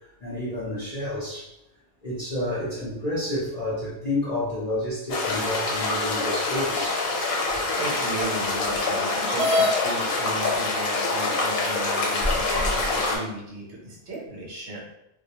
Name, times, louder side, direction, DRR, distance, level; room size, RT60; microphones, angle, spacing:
voice 1, 0.2-1.5 2.0-7.0, left 1 dB, 45° left, -9 dB, 0.6 m, -30 dB
sound 1, 5.1-13.2, left 3 dB, 90° left, 1.1 m, -26 dB
voice 2, 7.8-14.8, right 2 dB, 65° right, -3 dB, 0.8 m, -35 dB
sound 2, 9.4-9.8 10.7-10.8 11.5-11.6 12.2-12.9, left 1 dB, 85° right, 0.3 m, -24 dB
2.2 x 2.1 x 2.7 m, 0.82 s
omnidirectional pair, 1.4 m